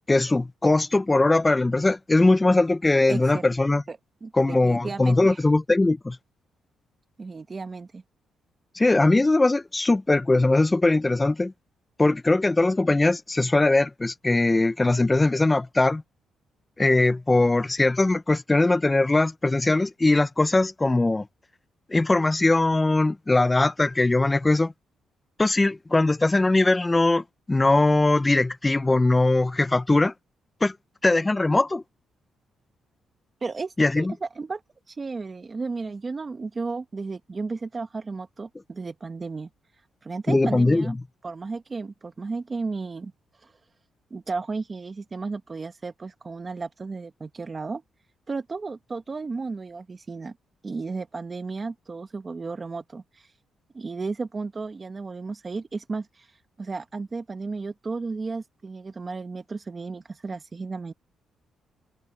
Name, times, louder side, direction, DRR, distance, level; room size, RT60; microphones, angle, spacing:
voice 1, 0.1-3.8 4.3-6.2 8.8-11.5 12.0-16.0 16.8-21.3 21.9-24.7 25.4-30.1 30.6-30.7 31.0-31.8 33.8-34.1 40.3-40.9, left 2 dB, 20° left, 0.5 m, -21 dB
voice 2, 3.1-3.4 3.9-5.4 7.2-8.0 33.4-34.6 34.9-39.5 40.0-41.0 41.2-43.1 43.4-43.5 44.1-47.8 48.3-50.3 50.6-53.3 53.7-60.9, right 4 dB, 30° right, 1.2 m, -34 dB
cardioid pair, 95°, 0 cm